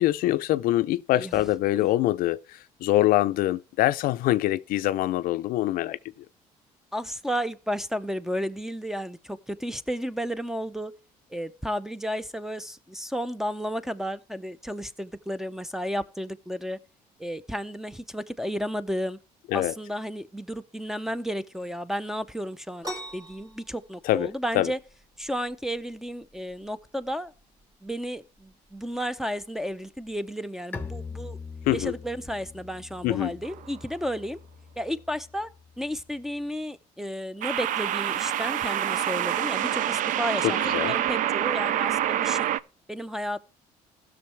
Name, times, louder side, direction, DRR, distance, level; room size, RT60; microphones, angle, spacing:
voice 1, 0.0-6.0 19.5-19.7 24.0-24.7 31.7-31.9 33.0-33.3 40.4-40.9, left 15 dB, 70° left, 0.4 m, -24 dB
voice 2, 1.1-1.5 1.7-1.9 6.9-10.9 11.3-16.8 17.2-19.2 19.5-24.8 25.2-27.3 27.8-31.4 31.7-34.4 34.8-35.5 35.8-42.5 42.9-43.4, equal, 5° right, 0.6 m, -32 dB
sound 1, 22.8-30.2, equal, 25° right, 2.5 m, -45 dB
Bowed string instrument, 30.7-36.3, left 4 dB, 15° left, 1.0 m, -42 dB
sound 2, 33.4-33.8 37.4-42.6, right 11 dB, 60° right, 0.4 m, -26 dB
16.0 x 6.4 x 3.3 m
cardioid pair, 95°, 15 cm